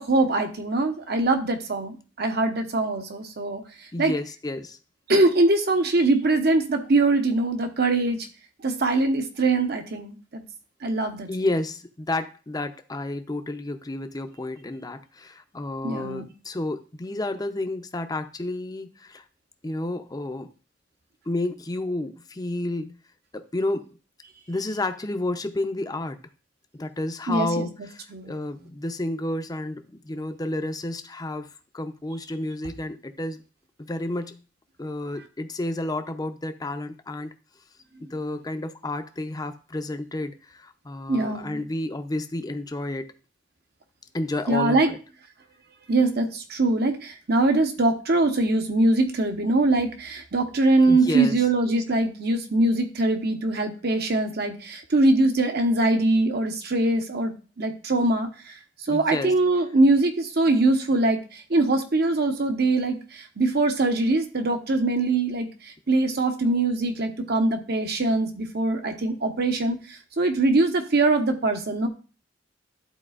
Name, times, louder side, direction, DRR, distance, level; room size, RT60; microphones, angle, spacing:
voice 1, 0.0-3.6 4.0-4.1 5.1-8.3 8.6-10.4 10.8-11.3 15.8-16.3 27.3-27.7 28.1-28.3 41.1-41.6 44.5-44.9 45.9-58.5 58.9-71.9, right 2 dB, 60° right, 6 dB, 1.0 m, -22 dB
voice 2, 3.9-4.8 11.3-19.2 19.6-20.5 21.3-23.0 23.3-23.8 24.5-26.2 26.7-31.5 31.7-33.4 33.8-34.4 34.8-37.3 38.0-43.1 44.1-45.0 50.9-51.4 58.9-59.3, left 2 dB, 20° left, 8 dB, 0.5 m, -31 dB
12.0 x 4.2 x 2.4 m, 0.36 s
head